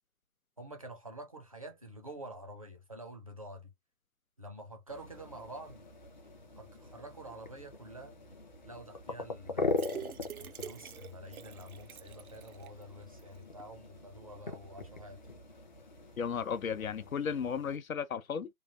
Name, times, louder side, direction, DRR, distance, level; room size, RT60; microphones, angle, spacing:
voice 1, 0.6-3.7 4.4-5.9 6.6-8.2 8.6-9.9 10.4-15.2, right 1 dB, 25° right, 0.4 m, -48 dB
sound 1, 4.9-17.8, left 3 dB, 35° left, 0.5 m, -42 dB
sound 2, 9.7-12.8 13.2-13.3 13.6-13.7, right 9 dB, 85° right, 0.7 m, -46 dB
voice 2, 16.2-18.5, left 7 dB, 75° left, 0.7 m, -34 dB
3.2 x 2.2 x 2.4 m
figure-of-eight pair, 155°, 42 cm